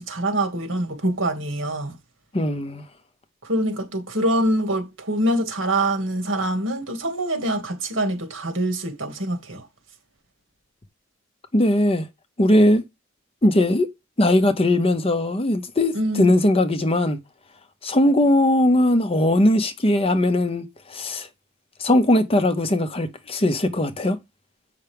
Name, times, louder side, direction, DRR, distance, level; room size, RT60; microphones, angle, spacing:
voice 1, 0.0-1.9 3.4-9.7 15.9-16.3, right 1 dB, 65° right, 2.2 m, -24 dB
voice 2, 2.3-2.8 11.5-12.1 12.4-12.8 13.4-13.9 14.2-17.2 17.8-21.3 21.8-24.2, left 1 dB, 30° left, 0.8 m, -19 dB
8.0 x 5.7 x 3.5 m
head